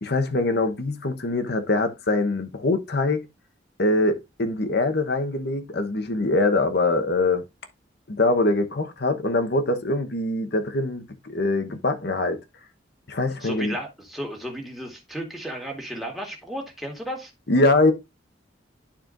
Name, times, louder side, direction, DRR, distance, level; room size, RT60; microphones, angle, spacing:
voice 1, 0.0-3.3 3.8-7.4 8.1-12.4 13.1-13.8 17.5-17.9, left 2 dB, 60° left, 1.0 m, -23 dB
voice 2, 13.4-17.3, equal, ahead, 1.9 m, -34 dB
11.5 x 4.4 x 2.5 m
head